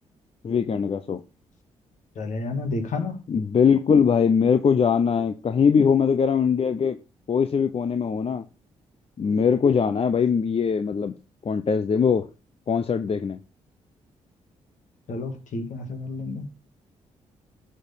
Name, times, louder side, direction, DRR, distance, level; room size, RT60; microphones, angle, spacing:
voice 1, 0.4-1.2 3.3-7.0 7.3-8.4 9.2-11.1 11.4-12.3 12.7-13.4, left 6 dB, 45° left, 0.8 m, -21 dB
voice 2, 2.2-3.2 15.1-16.5, left 3 dB, 70° left, 2.2 m, -30 dB
11.0 x 4.6 x 5.5 m
supercardioid pair, 55°, 13 cm